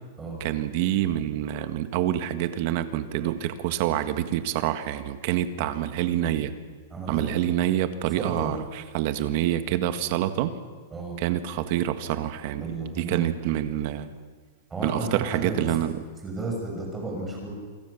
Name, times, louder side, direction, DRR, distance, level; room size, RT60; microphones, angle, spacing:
voice 1, 0.4-6.6 7.1-10.6 11.2-14.1 14.8-16.0, right 12 dB, 45° right, 10 dB, 1.7 m, -27 dB
voice 2, 6.9-7.3 8.2-8.5 10.9-11.2 12.5-13.3 14.7-15.8 16.2-17.5, right 2 dB, 10° right, 0 dB, 7.2 m, -33 dB
27.0 x 23.0 x 7.2 m, 1.5 s
supercardioid pair, 160°, 0 cm